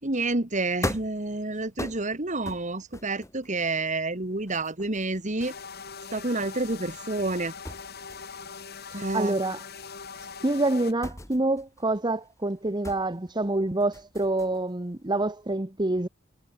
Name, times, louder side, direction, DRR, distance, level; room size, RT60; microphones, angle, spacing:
voice 1, 0.0-5.5 6.1-7.5 8.9-9.4, right 2 dB, 40° right, 2.6 m, -29 dB
sound 1, 0.8-7.4 7.6-14.8 15.1-15.5, left 1 dB, 15° left, 4.2 m, -40 dB
sound 2, 5.4-10.9, left 5 dB, 55° left, 3.1 m, -41 dB
voice 2, 9.1-9.6 10.4-16.1, right 2 dB, 25° right, 1.2 m, -27 dB
head